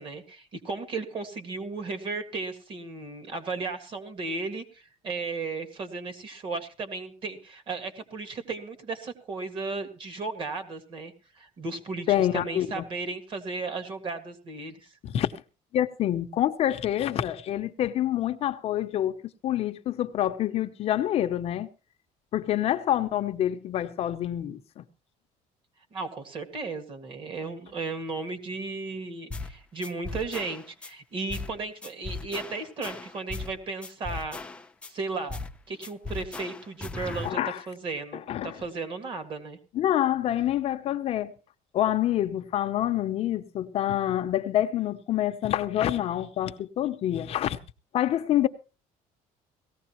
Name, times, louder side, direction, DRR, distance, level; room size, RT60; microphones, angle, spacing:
voice 1, 0.0-14.9 25.9-34.4 34.9-35.4 35.7-37.4 37.7-39.6, right 3 dB, 35° right, 1.9 m, -35 dB
voice 2, 12.1-12.8 15.0-15.3 15.7-21.7 22.3-24.8 37.2-37.6 38.1-38.6 39.7-41.3 41.7-47.6 47.9-48.5, left 12 dB, 45° left, 0.7 m, -27 dB
sound 1, 29.3-29.6 29.8-30.9 31.3-31.6 31.8-33.6 33.8-34.9 35.3-35.6 35.8-37.3, left 3 dB, 10° left, 0.6 m, -37 dB
18.0 x 15.0 x 3.0 m
cardioid pair, 165°, 14 cm